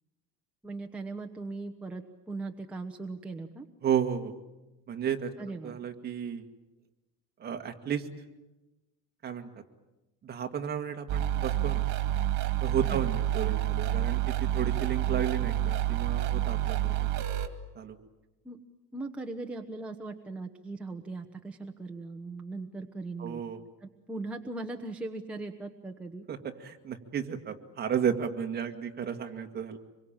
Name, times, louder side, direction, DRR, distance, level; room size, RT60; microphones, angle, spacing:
voice 1, 0.6-3.7 5.4-5.8 12.8-13.0 18.4-18.6 18.9-23.4 23.8-26.3, right 3 dB, 5° right, 2 dB, 1.1 m, -39 dB
voice 2, 3.8-4.3 4.9-5.3 5.6-6.4 7.4-8.1 9.2-9.6 10.2-11.8 12.6-17.3 17.8-18.0 23.2-23.6 26.3-29.8, right 8 dB, 30° right, 5 dB, 1.9 m, -33 dB
sound 1, 11.1-17.5, right 13 dB, 60° right, 2.4 m, -28 dB
25.5 x 23.0 x 8.9 m, 1.1 s
cardioid pair, 165°, 34 cm